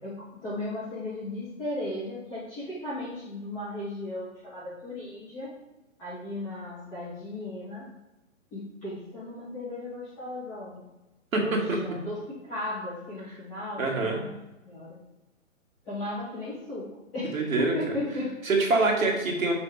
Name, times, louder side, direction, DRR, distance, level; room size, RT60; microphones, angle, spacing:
voice 1, 0.0-5.6 6.0-7.9 8.5-10.9 11.4-11.6 11.8-14.3 14.6-15.0 15.8-16.9 17.1-18.3, left 2 dB, 5° left, -14 dB, 0.4 m, -36 dB
voice 2, 11.3-11.8 13.8-14.2 17.3-17.7 18.4-19.5, right 3 dB, 75° right, 0 dB, 2.1 m, -25 dB
6.7 x 3.5 x 4.8 m, 1.0 s
hypercardioid pair, 145°, 41 cm